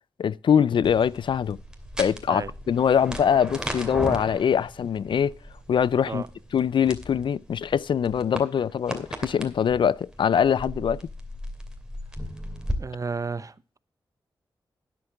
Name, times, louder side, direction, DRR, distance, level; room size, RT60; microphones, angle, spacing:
voice 1, 0.2-1.6 2.0-5.4 5.7-6.2 6.5-11.0, left 8 dB, 70° left, 0.4 m, -23 dB
sound 1, 0.8-12.8, equal, 10° right, 2.6 m, -37 dB
voice 2, 12.8-13.8, right 4 dB, 40° right, 0.8 m, -32 dB
12.5 x 9.9 x 3.4 m
cardioid pair, 60°, 9 cm